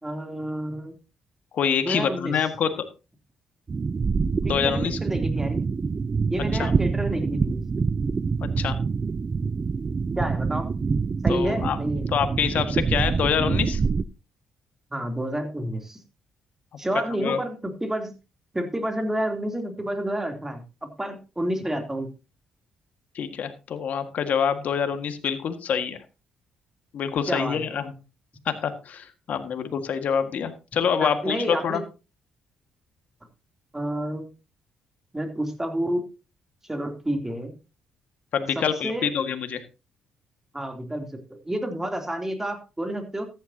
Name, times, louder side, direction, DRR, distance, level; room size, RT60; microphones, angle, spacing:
voice 1, 0.0-1.0 1.8-2.4 4.4-5.6 6.3-7.6 10.2-10.7 11.2-12.1 14.9-16.0 16.8-18.1 18.5-20.6 21.0-22.1 27.3-27.6 31.0-31.8 33.7-34.2 35.1-36.0 36.6-37.5 38.5-39.1 40.5-43.3, right 1 dB, 15° right, 5 dB, 3.0 m, -29 dB
voice 2, 1.5-2.7 4.4-5.0 6.5-6.7 8.4-8.8 11.3-11.8 12.1-13.8 17.2-17.4 23.1-26.0 26.9-27.9 28.4-31.8 38.3-39.6, left 7 dB, 65° left, 8 dB, 1.7 m, -26 dB
sound 1, 3.7-14.0, right 5 dB, 35° right, 0.5 m, -26 dB
14.0 x 10.5 x 2.8 m, 0.30 s
supercardioid pair, 60°, 3 cm